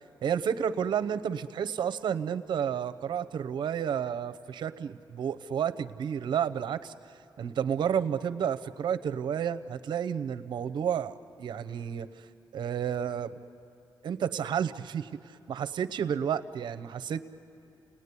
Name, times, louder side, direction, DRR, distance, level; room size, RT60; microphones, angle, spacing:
voice 1, 0.2-6.9 7.4-12.3 12.5-13.4 14.0-17.2, right 8 dB, 75° right, 10 dB, 0.8 m, -31 dB
30.0 x 19.5 x 9.7 m, 2.7 s
cardioid pair, 105°, 8 cm